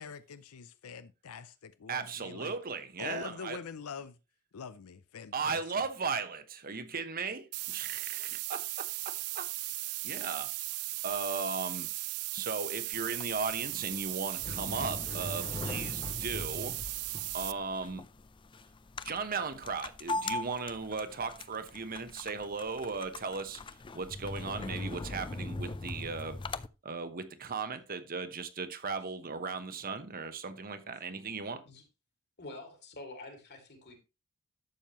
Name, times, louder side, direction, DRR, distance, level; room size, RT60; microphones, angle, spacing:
voice 1, 0.0-2.5 3.0-4.2 4.5-5.6, left 6 dB, 75° left, 0.5 m, -44 dB
voice 2, 1.9-3.6 5.3-9.5 10.0-10.5 11.0-11.9 12.3-16.8 17.3-18.0 19.0-26.4 26.8-31.6, right 4 dB, 40° right, 1.0 m, -37 dB
sound 1, 7.5-17.5, right 19 dB, 75° right, 0.5 m, -37 dB
sound 2, 12.9-26.7, left 2 dB, 20° left, 0.4 m, -41 dB
voice 3, 32.4-34.0, left 2 dB, 50° left, 2.6 m, -47 dB
11.5 x 7.3 x 3.0 m
head